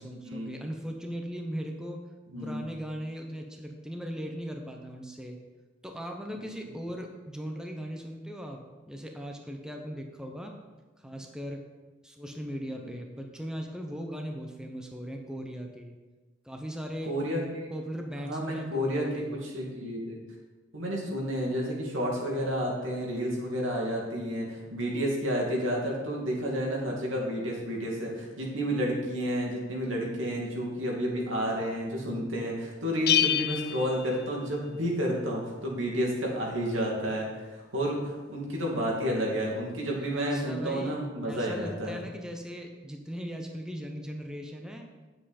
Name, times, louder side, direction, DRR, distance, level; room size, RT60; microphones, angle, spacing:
voice 1, 0.0-2.0 2.4-5.4 5.8-10.5 11.0-11.7 12.0-16.0 16.4-17.2 17.7-19.4 39.9-44.9, equal, 5° right, 2 dB, 0.8 m, -38 dB
voice 2, 2.3-2.6 6.4-6.6 11.0-11.1 12.7-12.9 17.0-17.7 18.2-20.2 20.7-42.0, equal, 90° right, -2 dB, 2.6 m, -31 dB
Bell, 33.1-34.9, left 11 dB, 55° left, 0.4 m, -28 dB
9.7 x 7.6 x 4.3 m, 1.2 s
head